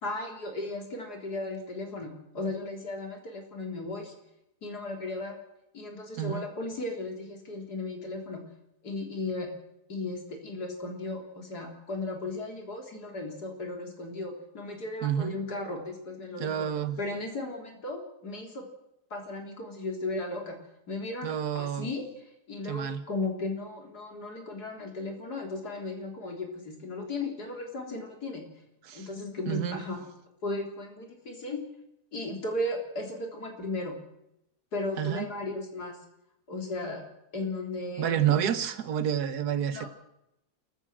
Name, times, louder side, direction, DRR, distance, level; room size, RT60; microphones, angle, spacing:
voice 1, 0.0-4.1 4.6-5.4 5.7-8.4 8.8-9.5 9.9-16.7 17.0-18.6 19.1-20.6 20.9-22.1 22.5-28.5 28.9-30.1 30.4-31.6 32.1-33.9 34.7-36.0 36.5-37.0 37.3-38.5 39.7-39.9, left 2 dB, 85° left, 2 dB, 4.1 m, -36 dB
voice 2, 6.2-6.5 15.0-15.4 16.4-17.0 21.2-21.9 22.6-23.0 28.8-29.1 29.5-29.8 35.0-35.3 38.0-39.9, right 10 dB, 80° right, 11 dB, 1.6 m, -29 dB
28.5 x 15.0 x 6.2 m, 0.85 s
omnidirectional pair, 1.7 m